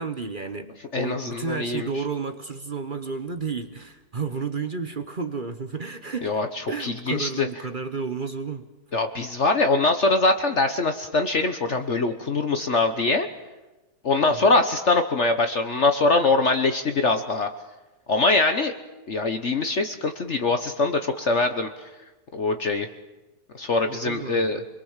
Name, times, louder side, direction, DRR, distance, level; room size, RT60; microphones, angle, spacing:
voice 1, 0.0-8.7 14.3-14.6 24.0-24.7, right 5 dB, 35° right, 9 dB, 0.9 m, -32 dB
voice 2, 0.9-1.9 6.2-6.5 6.8-7.5 8.9-13.3 14.0-17.5 18.1-18.7 19.1-21.9 22.3-22.9 23.6-24.6, left 3 dB, 45° left, 7 dB, 1.3 m, -23 dB
28.0 x 22.0 x 7.4 m, 1.1 s
omnidirectional pair, 1.8 m